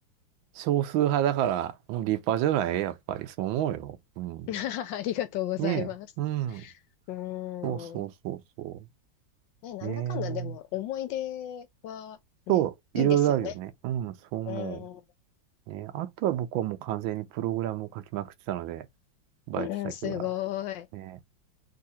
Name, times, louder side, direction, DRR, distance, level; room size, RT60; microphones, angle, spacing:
voice 1, 0.6-4.5 5.6-5.9 6.2-6.6 7.6-8.8 9.8-10.5 12.5-14.9 15.7-18.8 19.5-19.7 20.0-20.2 20.9-21.2, right 12 dB, 80° right, 1.3 m, -29 dB
voice 2, 4.5-6.1 6.5-6.7 7.1-8.0 9.6-12.2 12.5-12.7 12.9-13.5 14.4-15.0 19.6-20.9, left 12 dB, 75° left, 1.3 m, -34 dB
3.7 x 2.7 x 4.1 m
omnidirectional pair, 2.1 m